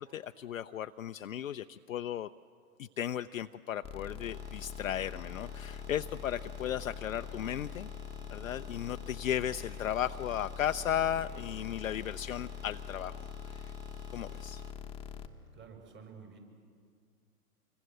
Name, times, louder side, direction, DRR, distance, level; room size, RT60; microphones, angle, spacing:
voice 1, 0.0-2.3 2.8-7.9 8.3-13.7 14.1-14.6, left 10 dB, 60° left, 9 dB, 0.7 m, -35 dB
sound 1, 3.8-15.3, left 8 dB, 10° left, 1.4 m, -43 dB
sound 2, 4.3-14.7, right 5 dB, 10° right, 0.6 m, -57 dB
voice 2, 15.5-16.4, right 6 dB, 25° right, 3 dB, 6.2 m, -51 dB
27.0 x 23.5 x 7.8 m, 2.1 s
figure-of-eight pair, 125°, 45 cm